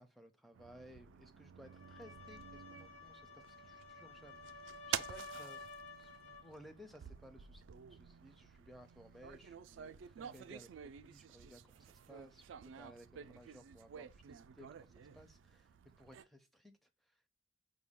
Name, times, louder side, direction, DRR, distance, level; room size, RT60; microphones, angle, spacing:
voice 1, 0.0-5.6 6.0-17.3, equal, ahead, 0.5 m, -59 dB
sound 1, 0.5-16.2, right 9 dB, 90° right, 0.3 m, -50 dB
sound 2, 1.6-6.6, left 3 dB, 65° left, 2.0 m, -52 dB
5.1 x 2.2 x 3.5 m
head